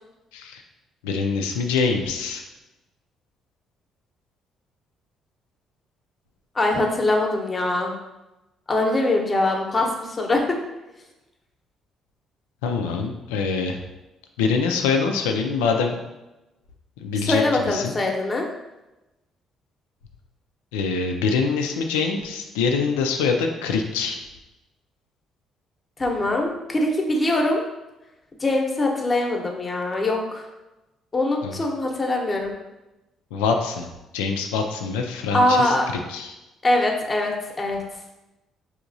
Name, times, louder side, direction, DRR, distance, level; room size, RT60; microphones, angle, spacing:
voice 1, 1.0-2.4 12.6-13.8 14.4-15.9 17.0-17.9 20.7-24.2 31.4-31.6 33.3-33.9 34.1-35.8 36.1-36.3, left 5 dB, 90° left, 4 dB, 0.4 m, -24 dB
voice 2, 6.5-7.9 8.7-10.4 17.2-18.5 26.0-27.6 28.4-30.4 31.1-32.6 35.3-35.8 36.6-37.8, left 2 dB, 30° left, 1 dB, 0.9 m, -22 dB
4.7 x 2.8 x 2.6 m, 1.0 s
hypercardioid pair, 60°, 0 cm